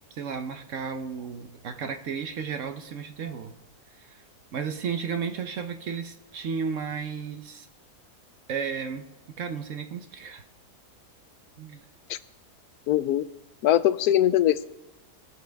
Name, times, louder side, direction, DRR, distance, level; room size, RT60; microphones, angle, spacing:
voice 1, 0.1-3.6 4.0-4.2 4.5-7.7 8.5-9.0 9.4-10.4 11.6-11.8, right 6 dB, 60° right, 7 dB, 1.0 m, -33 dB
voice 2, 12.9-13.3 13.6-14.7, left 12 dB, 75° left, 14 dB, 1.1 m, -21 dB
21.5 x 7.2 x 3.4 m, 1.0 s
omnidirectional pair, 1.7 m